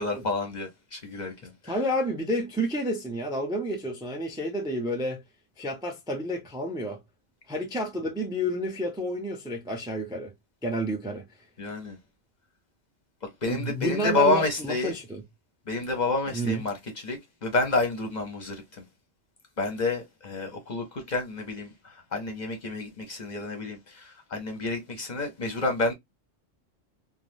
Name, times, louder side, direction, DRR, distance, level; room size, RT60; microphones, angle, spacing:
voice 1, 0.0-1.8 11.6-12.0 13.4-14.9 15.7-16.8 17.0-18.8 19.6-25.9, left 3 dB, 45° left, 0.7 m, -29 dB
voice 2, 1.6-5.2 5.6-7.0 7.5-10.3 10.6-11.3 13.5-15.2 16.3-16.6, equal, 5° right, 0.4 m, -30 dB
3.3 x 2.1 x 2.6 m
omnidirectional pair, 1.2 m